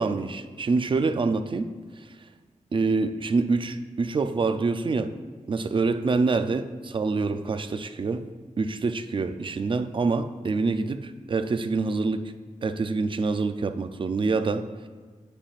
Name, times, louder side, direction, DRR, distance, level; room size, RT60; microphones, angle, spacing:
voice 1, 0.0-1.7 2.7-5.1 5.5-8.3 8.6-12.2 12.6-14.7, right 4 dB, 40° right, 10 dB, 0.4 m, -26 dB
8.9 x 8.9 x 2.5 m, 1.5 s
wide cardioid pair, 140°, 14 cm